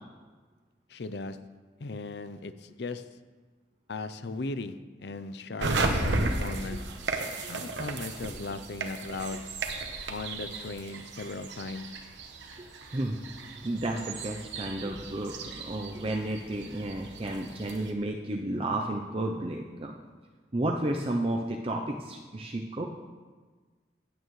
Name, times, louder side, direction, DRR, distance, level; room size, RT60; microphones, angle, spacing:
voice 1, 0.9-1.4 1.8-3.0 3.9-6.8 7.5-9.4 10.1-11.9, left 3 dB, 65° left, 12 dB, 0.5 m, -37 dB
sound 1, 5.6-17.9, right 2 dB, 85° right, 1.0 m, -35 dB
voice 2, 13.6-19.9 20.5-22.8, right 1 dB, 30° right, 1 dB, 0.6 m, -32 dB
15.5 x 8.9 x 3.2 m, 1.4 s
head